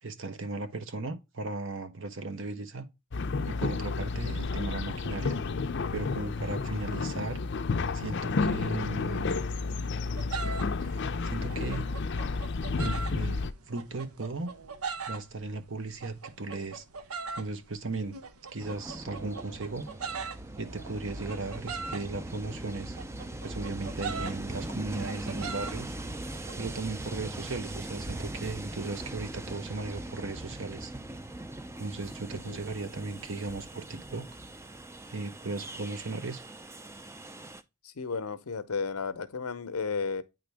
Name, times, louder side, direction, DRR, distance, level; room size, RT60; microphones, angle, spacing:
voice 1, 0.0-2.9 3.5-5.4 5.9-7.4 7.9-9.5 10.8-11.9 12.8-13.4 13.7-14.5 15.1-16.8 17.3-18.2 18.5-19.9 20.6-23.0 23.4-25.9 26.6-30.9 31.8-34.3 35.1-36.4, right 3 dB, 60° right, 1.0 m, -36 dB
Excavator Departing, 3.1-13.5, left 4 dB, 55° left, 0.5 m, -31 dB
sound 1, 10.2-26.6, right 5 dB, 85° right, 0.8 m, -42 dB
Train, 18.6-37.6, right 1 dB, 10° right, 0.4 m, -40 dB
voice 2, 37.8-40.2, left 5 dB, 85° left, 0.8 m, -33 dB
9.2 x 3.8 x 3.3 m
head